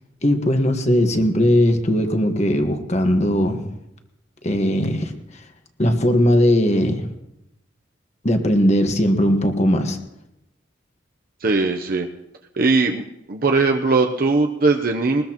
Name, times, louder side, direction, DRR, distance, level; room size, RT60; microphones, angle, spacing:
voice 1, 0.2-3.6 4.4-5.1 5.8-7.1 8.2-10.0, equal, 35° left, 5 dB, 1.5 m, -18 dB
voice 2, 11.4-12.1 12.6-13.0 13.3-15.2, right 3 dB, 50° right, 3 dB, 0.7 m, -19 dB
21.0 x 20.0 x 3.0 m, 0.88 s
head